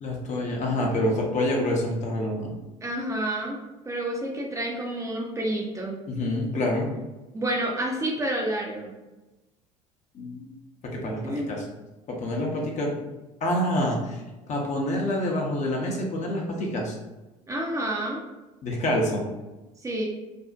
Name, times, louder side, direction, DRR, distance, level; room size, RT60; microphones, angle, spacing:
voice 1, 0.0-2.5 6.1-6.9 10.1-10.5 10.9-11.6 12.1-12.9 13.4-14.2 14.5-17.0 18.6-19.2, left 1 dB, 40° left, -1 dB, 0.6 m, -27 dB
voice 2, 2.8-3.6 3.8-6.0 7.3-8.9 11.2-11.5 17.5-18.2 19.8-20.1, right 1 dB, 15° right, -1 dB, 0.5 m, -29 dB
2.5 x 2.0 x 2.4 m, 1.1 s
hypercardioid pair, 65°, 18 cm